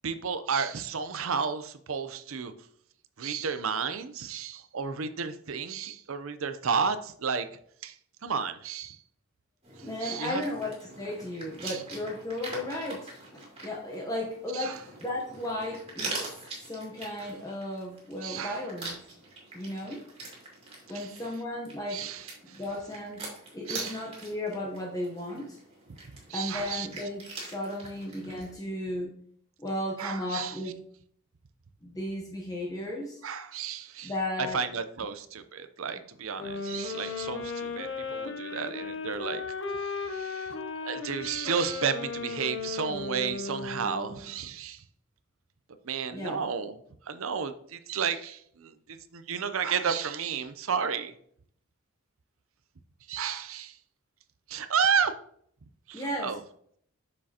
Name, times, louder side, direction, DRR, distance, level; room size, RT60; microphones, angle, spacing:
voice 1, 0.0-2.5 3.2-7.5 7.8-8.0 8.2-9.0 10.0-10.4 11.6-11.8 14.5-14.8 18.2-18.6 20.9-21.1 21.9-22.6 23.7-24.0 26.3-26.9 30.0-30.6 33.2-34.1 34.4-39.4 39.7-40.6 40.8-44.8 45.8-46.8 47.1-51.1 53.1-53.8 54.5-55.2 55.9-56.4, right 6 dB, 75° right, 10 dB, 0.6 m, -32 dB
sound 1, 9.6-28.5, right 2 dB, 25° right, 2.3 m, -43 dB
voice 2, 9.8-16.1 16.6-19.0 19.5-20.0 20.9-22.1 22.5-23.3 23.5-25.6 26.3-29.1 29.6-30.8 31.8-33.2 34.0-34.6 46.1-46.5 55.9-56.4, left 1 dB, 15° left, -2 dB, 0.9 m, -35 dB
sound 2, 36.4-44.3, left 4 dB, 60° left, 0.8 m, -36 dB
7.5 x 6.2 x 2.9 m, 0.64 s
head